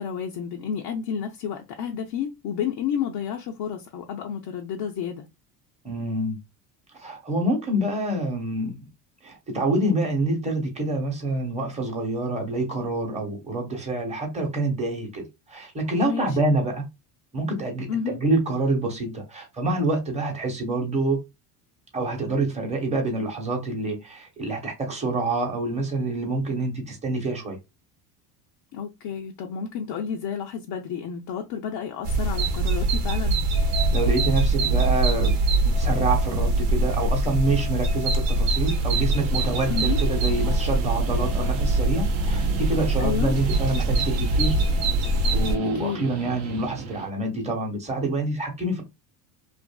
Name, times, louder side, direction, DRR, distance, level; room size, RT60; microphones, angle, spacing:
voice 1, 0.0-5.2 16.0-16.4 17.9-18.2 28.7-33.4 33.8-33.9 39.7-40.0 43.0-43.3 45.7-46.1, left 7 dB, 50° left, 0.6 m, -30 dB
voice 2, 5.8-6.4 6.9-8.8 9.2-16.8 17.3-21.2 21.9-27.6 33.9-35.3 35.6-44.5 45.3-48.8, right 2 dB, 15° right, 1.0 m, -27 dB
sound 1, 32.0-45.6, right 2 dB, 75° right, 0.9 m, -23 dB
Guitar, 38.5-47.1, right 6 dB, 35° right, 0.6 m, -37 dB
2.5 x 2.5 x 2.2 m
supercardioid pair, 105°, 47 cm